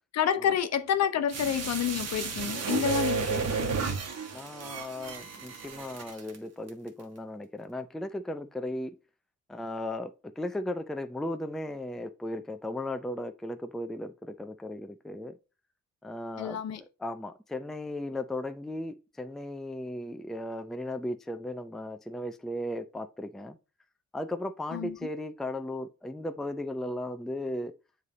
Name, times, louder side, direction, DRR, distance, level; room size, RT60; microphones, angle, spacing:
voice 1, 0.1-3.7 16.4-16.8 24.7-25.0, left 9 dB, 60° left, 0.8 m, -29 dB
sound 1, 1.3-6.3 6.7-6.8, right 5 dB, 55° right, 1.3 m, -32 dB
voice 2, 4.3-9.0 9.5-15.3 16.0-23.6 24.1-27.7, left 1 dB, ahead, 0.4 m, -36 dB
7.3 x 3.3 x 4.1 m
cardioid pair, 90°, 30 cm